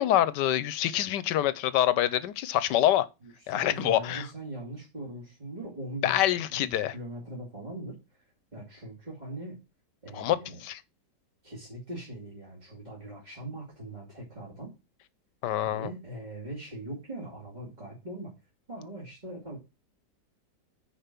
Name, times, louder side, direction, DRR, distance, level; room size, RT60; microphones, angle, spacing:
voice 1, 0.0-3.1 3.5-4.3 6.0-6.9 10.1-10.8 15.4-15.9, left 12 dB, 90° left, 1.3 m, -26 dB
voice 2, 3.2-6.2 6.5-8.2 8.5-9.6 10.0-10.6 11.4-14.7 15.6-18.3 18.7-19.6, right 1 dB, 25° right, 2.6 m, -41 dB
6.7 x 5.1 x 5.9 m
omnidirectional pair, 1.8 m